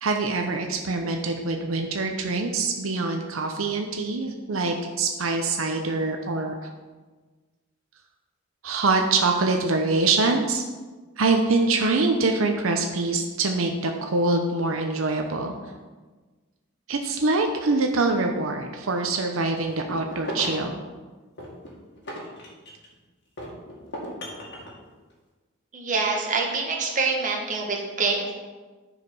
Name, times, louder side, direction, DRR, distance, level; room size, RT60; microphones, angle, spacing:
voice 1, 0.0-6.7 8.6-10.6 11.2-15.7 16.9-20.8, right 3 dB, 90° right, 3 dB, 0.8 m, -24 dB
sound 1, 19.7-20.7 21.4-22.9 23.4-24.7, equal, 55° left, 1.9 m, -36 dB
voice 2, 25.7-28.3, right 4 dB, 40° right, 0 dB, 1.6 m, -25 dB
9.8 x 4.9 x 5.4 m, 1.3 s
head